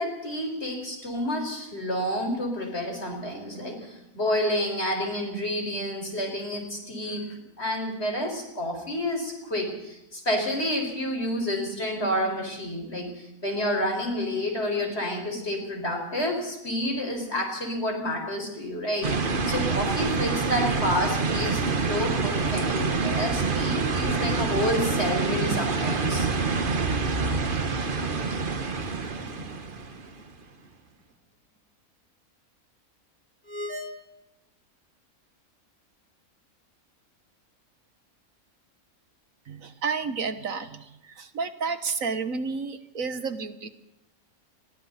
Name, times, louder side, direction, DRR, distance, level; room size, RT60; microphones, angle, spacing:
voice 1, 0.0-21.6 21.9-26.3, left 1 dB, 45° left, 2 dB, 5.7 m, -29 dB
sound 1, 19.0-30.2, right 4 dB, 40° right, 1.4 m, -26 dB
sound 2, 28.8-30.5 30.8-30.9 33.4-33.9, left 1 dB, 10° left, 2.6 m, -40 dB
voice 2, 39.5-43.7, right 5 dB, 65° right, 11 dB, 1.6 m, -31 dB
29.5 x 22.5 x 4.2 m, 0.90 s
omnidirectional pair, 1.5 m